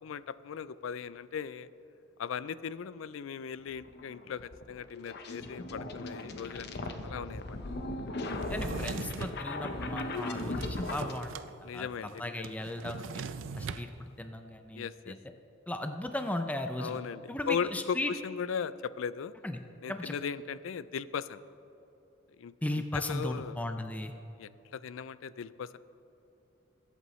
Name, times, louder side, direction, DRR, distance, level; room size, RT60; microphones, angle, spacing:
voice 1, 0.0-1.7 2.2-7.6 8.7-8.9 11.6-12.5 14.7-15.1 16.8-19.3 19.8-21.4 22.4-23.6 24.4-25.8, left 7 dB, 90° left, 16 dB, 0.4 m, -38 dB
sound 1, 3.7-11.1, left 2 dB, 55° left, 0.8 m, -37 dB
Drawer open or close, 8.4-9.4 10.0-11.5 11.7-11.8 12.1-13.9, right 5 dB, 80° right, 0.5 m, -40 dB
voice 2, 8.5-11.3 11.7-11.9 12.2-13.2 13.6-15.2 15.7-17.0 17.3-18.1 19.4-19.6 19.9-20.2 22.6-24.1, left 1 dB, 10° left, 6 dB, 0.4 m, -36 dB
21.0 x 8.3 x 3.2 m, 2.9 s
head